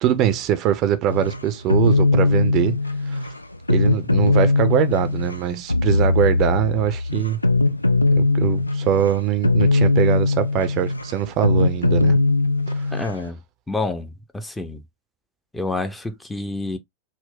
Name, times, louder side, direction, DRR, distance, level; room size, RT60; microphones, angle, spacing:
voice 1, 0.0-2.8 3.1-3.3 3.7-7.4 8.2-12.2 12.7-12.9, right 10 dB, 35° right, 0.5 m, -22 dB
sound 1, 1.1-13.3, left 3 dB, 85° left, 0.4 m, -20 dB
voice 2, 12.9-13.4 13.7-14.8 15.5-16.8, left 2 dB, 10° left, 0.6 m, -28 dB
4.1 x 2.1 x 3.8 m
figure-of-eight pair, 90°, 0 cm